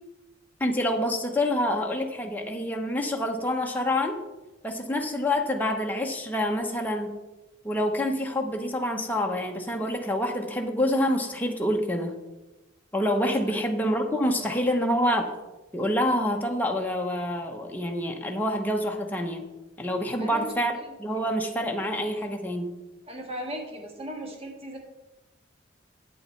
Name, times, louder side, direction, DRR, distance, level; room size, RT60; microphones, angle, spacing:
voice 1, 0.6-4.2 4.6-7.1 7.6-12.1 12.9-15.3 15.7-19.4 19.8-22.7, left 1 dB, 10° left, 2 dB, 0.9 m, -27 dB
voice 2, 20.2-20.5 23.1-24.8, equal, 30° right, 2 dB, 1.7 m, -37 dB
8.8 x 8.0 x 4.5 m, 1.0 s
head